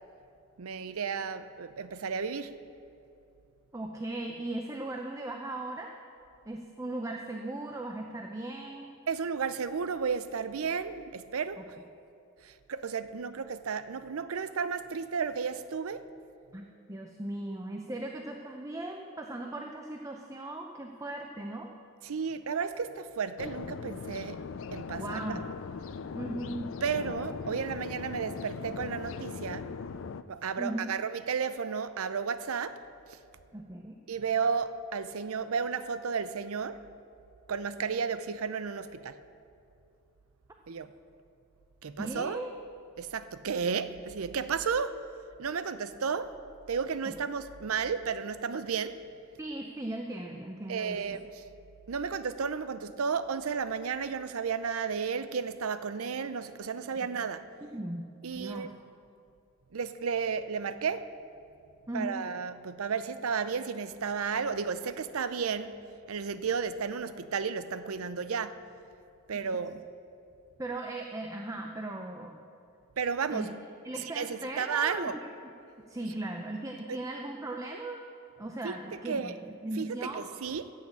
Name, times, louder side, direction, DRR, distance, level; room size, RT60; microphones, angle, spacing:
voice 1, 0.6-2.6 9.1-11.6 12.4-16.0 22.0-24.5 24.7-25.4 26.8-29.7 30.3-32.8 33.1-33.2 34.1-36.8 37.5-39.2 40.7-40.9 41.8-42.4 43.0-45.0 45.4-46.4 46.7-49.0 50.7-51.4 51.9-57.5 58.2-58.7 59.7-61.1 61.9-65.8 66.1-68.6 69.3-69.8 73.0-73.5 73.9-75.2 76.9-77.0 78.6-78.8 79.1-79.3 79.8-80.7, right 6 dB, 85° right, 0.6 m, -33 dB
voice 2, 3.7-5.9 6.5-8.9 16.5-21.7 24.9-25.4 26.1-26.7 30.6-30.9 33.5-34.0 42.0-42.5 47.1-47.2 49.4-51.0 57.7-58.0 58.4-58.7 61.9-62.3 70.6-72.4 73.3-73.5 73.8-75.1 75.9-78.0 78.4-80.2, right 1 dB, 15° right, 0.6 m, -38 dB
sound 1, 23.4-30.2, left 5 dB, 60° left, 0.4 m, -39 dB
14.5 x 6.6 x 8.4 m
head